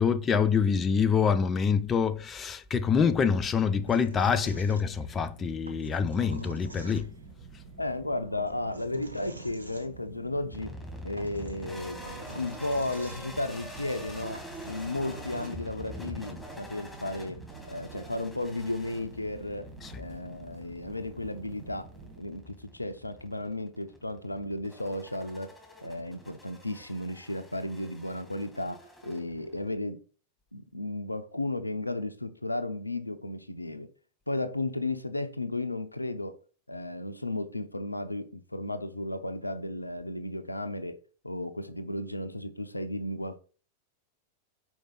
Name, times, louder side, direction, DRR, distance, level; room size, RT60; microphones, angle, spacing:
voice 1, 0.0-7.1, left 6 dB, 20° left, 0.5 m, -26 dB
sound 1, 2.9-22.2, right 5 dB, 40° right, 1.5 m, -49 dB
sound 2, 3.8-5.2 5.6-7.3 8.4-9.9 10.8-10.9 11.2-13.5 14.0-14.1 14.3-15.5, right 1 dB, 80° right, 0.9 m, -45 dB
voice 2, 7.8-10.8 11.0-12.0 12.3-17.4 17.7-19.7 20.0-21.9 22.2-25.5 25.8-30.0 30.5-33.9 34.3-36.4 36.7-41.0 41.2-43.4, left 2 dB, 85° left, 0.6 m, -34 dB
sound 3, 10.5-29.7, left 1 dB, 5° left, 2.0 m, -46 dB
5.3 x 4.7 x 5.7 m
figure-of-eight pair, 90°, 0 cm